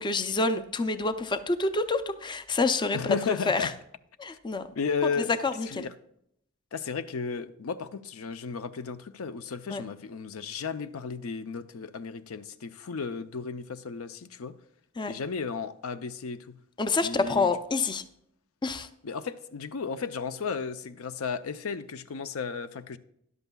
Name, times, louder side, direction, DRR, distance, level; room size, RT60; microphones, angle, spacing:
voice 1, 0.0-3.2 3.5-3.7 4.2-4.7 5.4-5.9 9.7-9.8 15.0-15.1 16.8-18.0 18.6-18.9, left 3 dB, 20° left, 0.4 m, -27 dB
voice 2, 2.9-3.7 4.3-4.4 4.8-5.4 5.7-5.9 6.7-14.6 15.1-16.6 17.0-17.5 19.0-23.0, left 5 dB, 70° left, 0.5 m, -34 dB
13.5 x 11.0 x 2.3 m
head